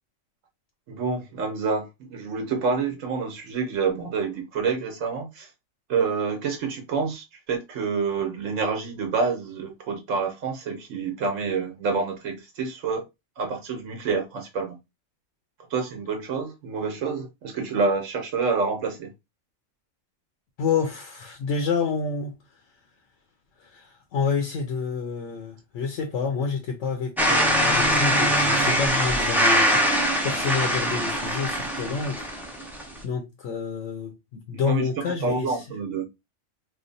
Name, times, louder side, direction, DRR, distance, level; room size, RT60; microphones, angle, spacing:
voice 1, 0.9-5.5 5.9-13.0 13.4-14.8 15.7-19.1 34.5-34.9 35.2-36.0, right 4 dB, 80° right, 1.1 m, -28 dB
voice 2, 20.6-22.3 23.6-32.3 32.7-35.6, left 5 dB, 75° left, 1.0 m, -29 dB
sound 1, 27.2-33.0, equal, ahead, 0.5 m, -22 dB
3.1 x 2.1 x 3.9 m
omnidirectional pair, 1.3 m